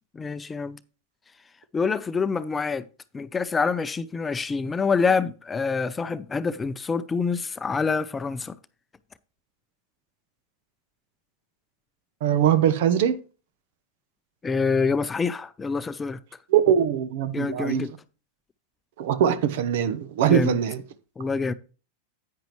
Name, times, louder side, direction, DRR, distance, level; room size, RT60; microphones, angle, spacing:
voice 1, 0.1-0.8 1.7-2.9 3.1-8.6 14.4-16.2 17.3-17.9 20.3-20.6 21.2-21.5, left 5 dB, 15° left, 0.6 m, -26 dB
voice 2, 12.2-13.2 16.5-17.9 19.0-20.8, right 9 dB, 65° right, 1.0 m, -22 dB
10.5 x 9.4 x 3.1 m
hypercardioid pair, 100°, 0 cm